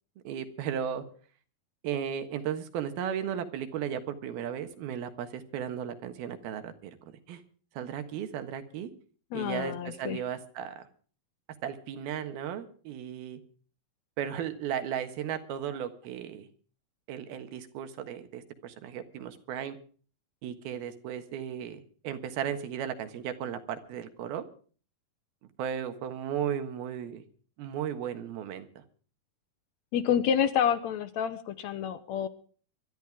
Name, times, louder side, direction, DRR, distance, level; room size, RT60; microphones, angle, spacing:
voice 1, 0.2-1.0 1.8-7.4 7.7-8.9 9.3-10.8 11.6-13.4 14.2-16.5 17.1-19.8 20.4-24.4 25.6-27.2 27.6-28.8, right 9 dB, 80° right, 9 dB, 3.3 m, -35 dB
voice 2, 9.3-10.2 29.9-32.3, left 8 dB, 70° left, 12 dB, 1.8 m, -28 dB
24.5 x 12.5 x 3.6 m, 0.41 s
omnidirectional pair, 4.3 m